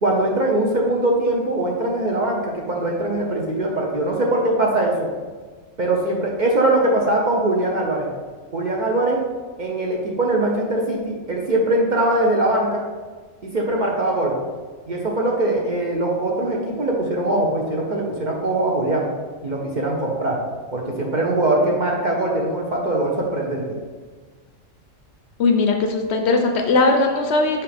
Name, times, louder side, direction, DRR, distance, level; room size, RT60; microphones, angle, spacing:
voice 1, 0.0-5.0 5.8-8.1 8.5-9.2 9.6-12.8 13.4-14.3 14.9-19.1 19.4-20.4 20.7-23.8, right 1 dB, 45° right, -2 dB, 0.7 m, -21 dB
voice 2, 25.4-27.6, left 3 dB, 65° left, 4 dB, 0.7 m, -19 dB
5.7 x 5.2 x 3.4 m, 1.5 s
omnidirectional pair, 1.4 m